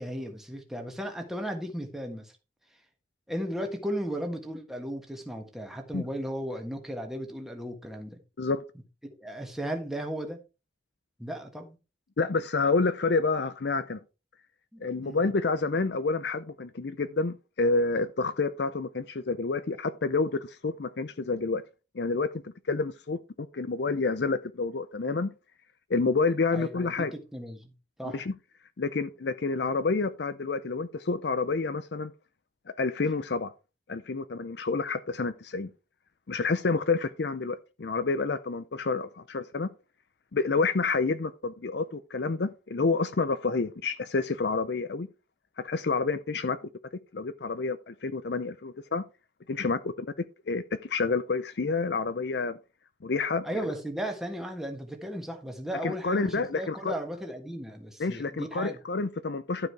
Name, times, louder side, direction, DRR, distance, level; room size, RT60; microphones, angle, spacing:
voice 1, 0.0-2.3 3.3-8.2 9.2-10.4 11.2-11.8 14.7-15.2 26.5-27.7 28.0-28.2 53.4-58.8, equal, ahead, 1.5 m, -35 dB
voice 2, 12.2-14.0 14.8-21.6 21.9-25.3 25.9-27.1 28.1-28.3 28.8-32.1 32.8-33.5 33.9-35.7 36.3-39.7 40.3-45.1 45.6-46.7 47.1-49.0 49.5-50.1 50.5-52.6 53.0-53.7 55.8-56.9 58.0-59.7, left 4 dB, 65° left, 0.6 m, -29 dB
12.0 x 4.9 x 4.7 m
head